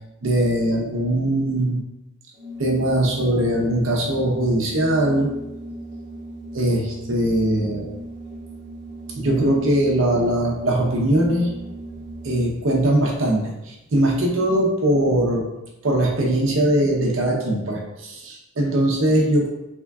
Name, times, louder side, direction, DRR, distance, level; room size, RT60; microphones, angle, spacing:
voice 1, 0.2-1.8 2.6-5.3 6.5-7.9 9.1-11.5 12.2-15.4 15.8-19.5, right 1 dB, 85° right, -2 dB, 0.8 m, -21 dB
Organ, 2.4-12.6, right 1 dB, 45° right, 0.9 m, -37 dB
3.6 x 3.4 x 2.3 m, 0.92 s
head